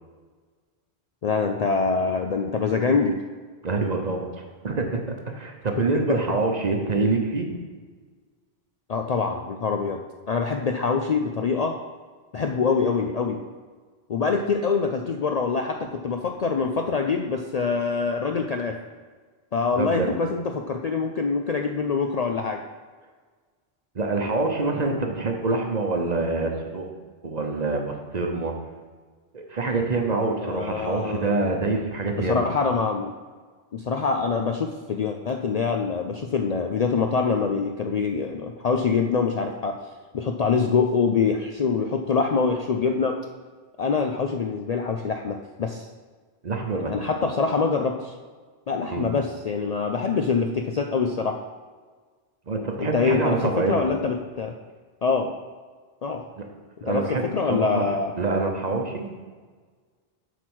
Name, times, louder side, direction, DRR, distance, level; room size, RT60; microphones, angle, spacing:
voice 1, 1.2-3.2 6.1-6.2 8.9-10.0 10.3-11.8 12.3-13.4 14.1-18.8 19.5-22.6 30.4-31.5 32.3-33.1 33.7-39.7 40.1-43.2 43.8-45.9 46.7-48.1 48.7-51.4 52.8-54.5 55.0-55.3 56.0-56.2 56.8-58.1, left 5 dB, 50° left, 3 dB, 0.5 m, -25 dB
voice 2, 3.6-7.6 19.7-20.1 23.9-26.9 27.2-28.5 29.3-32.4 46.4-46.9 48.9-49.1 52.5-53.9 56.4-56.5 56.8-59.1, right 3 dB, 45° right, 3 dB, 1.0 m, -26 dB
8.1 x 4.5 x 6.2 m, 1.5 s
omnidirectional pair, 1.1 m